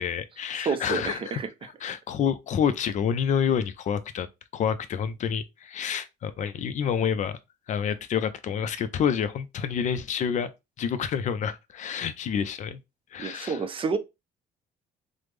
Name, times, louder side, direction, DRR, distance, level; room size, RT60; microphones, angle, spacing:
voice 1, 0.0-4.3 4.5-7.4 7.7-10.5 10.8-12.8 13.1-13.6, left 7 dB, 45° left, 0.4 m, -28 dB
voice 2, 0.7-1.5 13.2-14.0, right 5 dB, 30° right, 0.4 m, -29 dB
3.3 x 2.0 x 3.1 m
cardioid pair, 110°, 17 cm